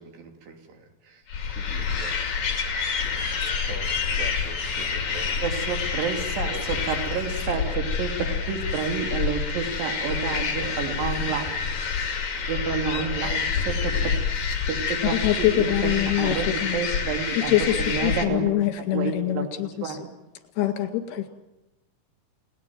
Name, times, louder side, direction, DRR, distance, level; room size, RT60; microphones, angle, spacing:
voice 1, 0.0-2.2 3.0-5.6 6.0-6.1 6.4-6.9 7.7-7.8 9.8-10.8 13.0-14.3, right 4 dB, 80° right, 4 dB, 5.3 m, -42 dB
sound 1, 1.3-18.3, left 6 dB, 50° left, 3.7 m, -28 dB
sound 2, 3.9-4.2 4.7-5.9 6.2-8.1 8.5-9.9 10.6-11.9 12.4-12.9 13.1-14.1, left 2 dB, 15° left, 6.6 m, -44 dB
voice 2, 5.4-6.5 6.9-7.7 8.0-11.5 12.5-13.9 14.7-15.2 15.6-18.5 18.9-20.0, right 6 dB, 60° right, 5 dB, 4.0 m, -30 dB
voice 3, 15.1-16.8 17.5-20.0 20.6-21.3, left 13 dB, 75° left, 8 dB, 3.9 m, -24 dB
29.5 x 19.0 x 9.2 m, 0.94 s
omnidirectional pair, 4.7 m